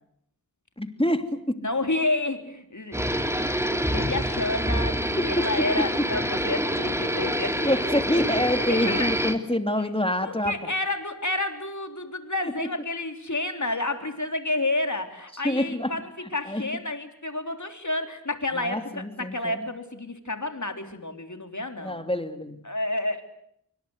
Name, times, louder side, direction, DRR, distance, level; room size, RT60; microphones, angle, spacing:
voice 1, 0.8-1.6 5.2-5.7 7.6-10.7 12.4-12.7 15.4-15.9 16.4-16.6 18.5-19.6 21.8-22.6, left 1 dB, 15° left, 8 dB, 2.9 m, -27 dB
voice 2, 1.6-3.1 3.9-7.7 8.7-9.1 10.2-16.0 16.3-22.0 22.6-23.2, left 2 dB, 55° left, 6 dB, 3.8 m, -30 dB
sound 1, 2.9-9.4, equal, 10° right, 2.7 m, -26 dB
27.5 x 24.0 x 8.1 m, 0.72 s
wide cardioid pair, 45°, 35 cm